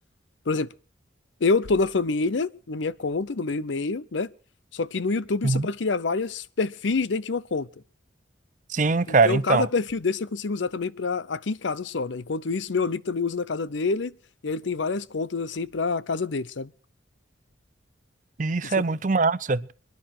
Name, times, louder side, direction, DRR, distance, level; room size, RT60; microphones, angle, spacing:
voice 1, 1.4-4.3 4.7-7.7 9.1-14.1 14.4-16.7 18.6-18.8, left 4 dB, 80° left, 0.7 m, -27 dB
voice 2, 8.7-9.7 18.4-19.7, right 3 dB, 45° right, 0.6 m, -22 dB
26.0 x 10.5 x 4.3 m
head